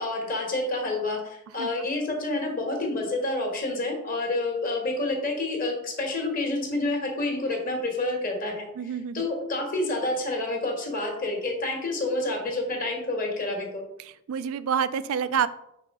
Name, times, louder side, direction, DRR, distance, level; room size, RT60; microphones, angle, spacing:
voice 1, 0.0-13.8, left 2 dB, 40° left, 1 dB, 1.4 m, -29 dB
voice 2, 8.8-9.3 14.0-15.5, right 7 dB, 75° right, 13 dB, 0.3 m, -28 dB
4.3 x 4.1 x 5.4 m, 0.81 s
head